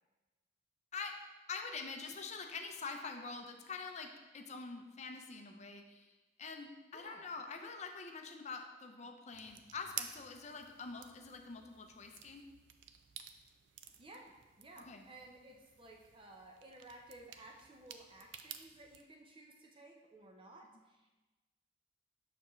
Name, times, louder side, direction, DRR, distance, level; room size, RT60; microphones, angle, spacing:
voice 1, 1.5-6.1 6.4-12.4 14.9-15.0, left 4 dB, 35° left, 5 dB, 0.6 m, -45 dB
voice 2, 6.9-7.3 13.8-21.1, right 2 dB, 25° right, 0 dB, 0.7 m, -56 dB
sound 1, 9.3-19.0, right 9 dB, 80° right, 0.4 m, -52 dB
6.8 x 6.0 x 3.1 m, 1.2 s
head